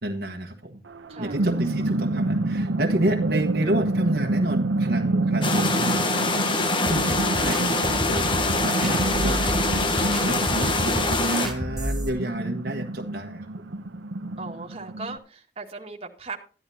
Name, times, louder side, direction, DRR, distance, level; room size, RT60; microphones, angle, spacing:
voice 1, 0.0-0.8 1.2-6.1 6.5-13.5, right 1 dB, 55° right, 1 dB, 1.4 m, -30 dB
sound 1, 0.9-15.2, right 2 dB, 90° right, 0.8 m, -28 dB
voice 2, 1.1-1.4 3.0-3.1 6.7-7.2 14.4-16.4, right 3 dB, 35° right, 1 dB, 2.0 m, -38 dB
sound 2, 5.4-11.5, left 2 dB, 25° left, 1.1 m, -24 dB
sound 3, 6.8-12.1, equal, ahead, 3.1 m, -31 dB
14.0 x 11.0 x 2.8 m, 0.38 s
head